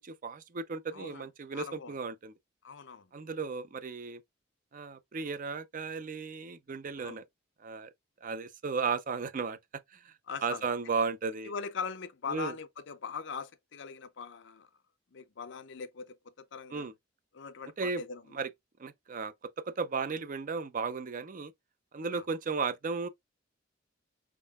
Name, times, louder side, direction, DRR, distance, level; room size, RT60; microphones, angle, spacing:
voice 1, 0.0-2.3 3.1-4.2 4.7-7.2 7.6-7.9 8.2-9.6 9.9-10.1 10.4-11.5 12.3-12.5 16.7-16.9 17.8-18.0 18.3-18.5 18.8-19.3 19.7-21.5 21.9-23.1, right 4 dB, 45° right, 0.5 m, -35 dB
voice 2, 0.9-1.3 1.5-1.9 2.6-3.1 7.0-7.2 10.3-10.6 11.4-14.7 15.1-16.9 17.3-18.2 22.1-22.2, left 5 dB, 65° left, 0.6 m, -41 dB
5.3 x 3.7 x 2.3 m
head